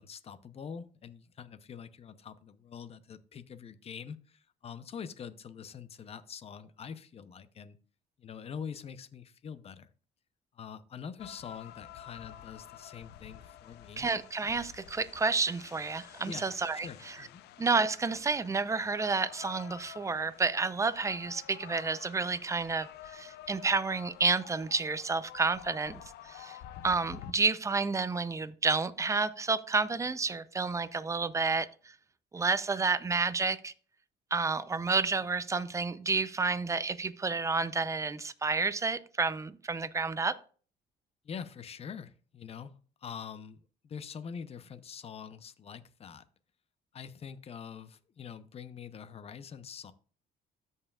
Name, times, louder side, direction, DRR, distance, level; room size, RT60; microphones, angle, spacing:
voice 1, 0.0-7.8 8.2-9.9 10.5-14.1 16.3-16.5 16.8-17.4 41.2-42.7 43.0-46.2 46.9-49.9, left 7 dB, 35° left, 13 dB, 0.7 m, -44 dB
sound 1, 11.2-27.3, left 12 dB, 75° left, 0.6 m, -50 dB
voice 2, 14.0-17.3 17.6-26.6 26.8-31.9 32.3-33.7 34.3-40.3, right 4 dB, 20° right, 14 dB, 0.6 m, -30 dB
13.5 x 5.5 x 2.4 m, 0.41 s
cardioid pair, 110°, 17 cm